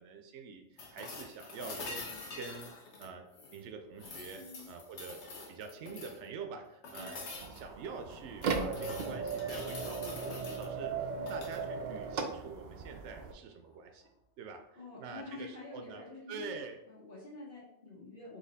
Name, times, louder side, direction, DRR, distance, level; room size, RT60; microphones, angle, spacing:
voice 1, 0.0-2.7 3.0-3.3 3.5-5.2 5.5-14.0 14.4-16.8, right 5 dB, 85° right, 5 dB, 0.9 m, -46 dB
sound 1, 0.8-3.6 4.0-6.3 6.8-7.6 8.1-10.7 11.2-11.6 13.6-13.7, left 3 dB, 90° left, 1.2 m, -46 dB
voice 2, 4.3-4.7 6.9-7.1 11.2-11.4 14.7-18.4, left 2 dB, 55° left, -7 dB, 1.4 m, -48 dB
sound 2, 7.3-13.3, right 5 dB, 55° right, 0.5 m, -37 dB
4.1 x 2.9 x 4.0 m, 0.84 s
omnidirectional pair, 1.1 m